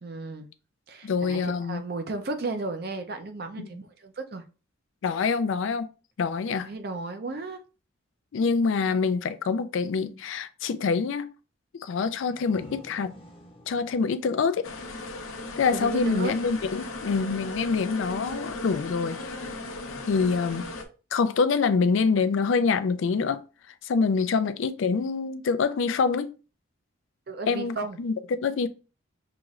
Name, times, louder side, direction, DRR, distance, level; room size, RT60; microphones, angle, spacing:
voice 1, 0.0-0.5 0.9-4.4 6.6-7.6 15.7-16.3 27.3-28.0, right 3 dB, 50° right, 0.5 m, -34 dB
voice 2, 1.0-1.8 3.6-3.7 5.0-5.9 6.2-6.7 8.3-11.3 11.8-13.2 13.7-14.7 15.6-19.3 20.1-20.7 21.1-23.4 23.8-26.3 27.5-28.1 28.4-28.7, left 5 dB, 70° left, 0.4 m, -25 dB
sound 1, 12.0-15.6, equal, 25° left, 0.7 m, -50 dB
sound 2, 14.6-20.8, left 2 dB, 90° left, 0.8 m, -37 dB
5.8 x 3.0 x 2.4 m
head